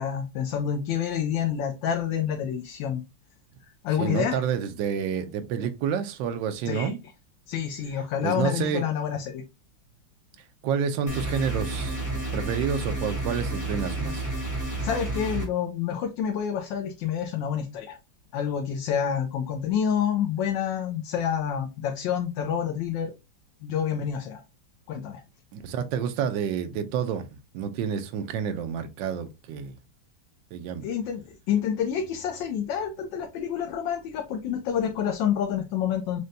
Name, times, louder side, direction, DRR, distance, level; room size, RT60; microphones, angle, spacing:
voice 1, 0.0-3.0 3.8-4.4 6.7-6.9 7.5-9.4 14.8-18.0 18.3-23.1 23.6-24.4 24.9-25.2 30.8-31.2 31.5-36.2, left 8 dB, 80° left, 1.3 m, -28 dB
voice 2, 4.0-7.0 8.2-8.8 10.6-14.2 25.5-29.7 30.5-30.9, right 7 dB, 80° right, 1.3 m, -29 dB
sound 1, 11.1-15.5, right 2 dB, 10° left, 1.1 m, -30 dB
6.3 x 2.2 x 2.6 m
omnidirectional pair, 2.0 m